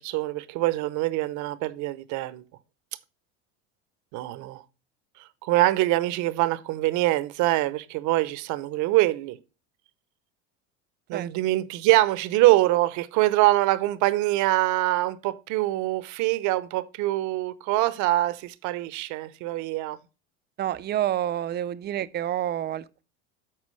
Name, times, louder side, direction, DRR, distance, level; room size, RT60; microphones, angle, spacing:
voice 1, 0.0-2.4 4.1-4.6 5.2-9.4 11.1-20.0, right 17 dB, 60° right, 0.8 m, -24 dB
voice 2, 20.6-23.0, right 11 dB, 30° right, 0.5 m, -28 dB
13.0 x 4.6 x 3.2 m
supercardioid pair, 110°, 34 cm